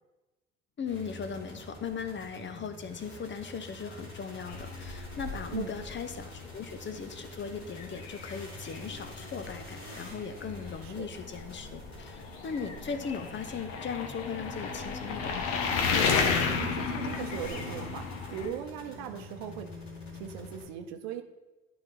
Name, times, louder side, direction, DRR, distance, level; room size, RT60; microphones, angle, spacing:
sound 1, 0.8-20.7, left 2 dB, 90° left, 2.3 m, -46 dB
voice 1, 0.8-15.5, left 6 dB, 40° left, 9 dB, 0.9 m, -38 dB
sound 2, 4.5-18.5, left 5 dB, 70° left, 1.1 m, -34 dB
voice 2, 5.5-5.8 10.8-11.1 16.6-19.7 20.1-21.2, right 9 dB, 75° right, 7 dB, 0.8 m, -39 dB
11.5 x 4.3 x 4.0 m, 1.1 s
hypercardioid pair, 55°, 30 cm